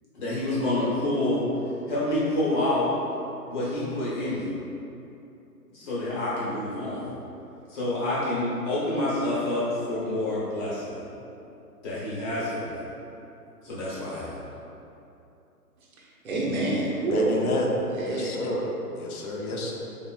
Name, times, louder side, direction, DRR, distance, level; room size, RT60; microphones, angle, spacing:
voice 1, 0.1-1.4 1.9-2.9 3.5-4.5 5.7-7.1 7.7-11.0 11.8-12.8 13.6-14.4, left 1 dB, 30° left, -8 dB, 1.1 m, -28 dB
voice 2, 16.0-17.5 17.8-18.4, right 2 dB, 60° right, -3 dB, 1.0 m, -27 dB
voice 3, 17.1-17.7 18.1-18.6 19.0-19.7, left 1 dB, 65° left, -1 dB, 0.7 m, -29 dB
3.8 x 3.5 x 2.3 m, 2.8 s
hypercardioid pair, 135°, 47 cm